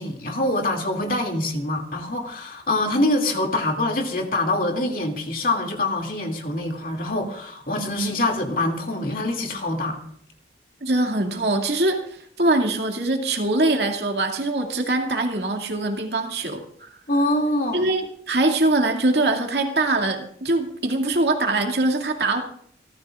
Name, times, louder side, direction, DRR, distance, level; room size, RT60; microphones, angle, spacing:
voice 1, 0.0-10.0 17.1-17.8, left 1 dB, 50° left, 2.5 m, -25 dB
voice 2, 10.8-16.9 17.7-18.0 18.3-22.4, right 2 dB, 70° right, 2.4 m, -23 dB
28.0 x 14.0 x 2.5 m
head